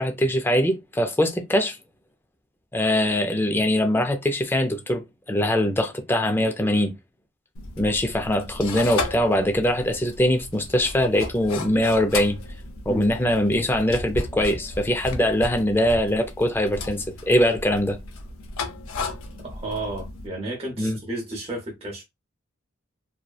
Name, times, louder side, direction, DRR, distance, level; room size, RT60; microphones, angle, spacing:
voice 1, 0.0-1.8 2.7-5.0 5.3-6.9 7.8-12.4 12.9-18.0 20.8-21.0, left 1 dB, 10° left, 0.4 m, -22 dB
sound 1, 7.5-20.3, left 3 dB, 80° left, 0.5 m, -35 dB
voice 2, 19.4-22.0, right 2 dB, 30° right, 0.8 m, -32 dB
2.7 x 2.1 x 2.3 m
head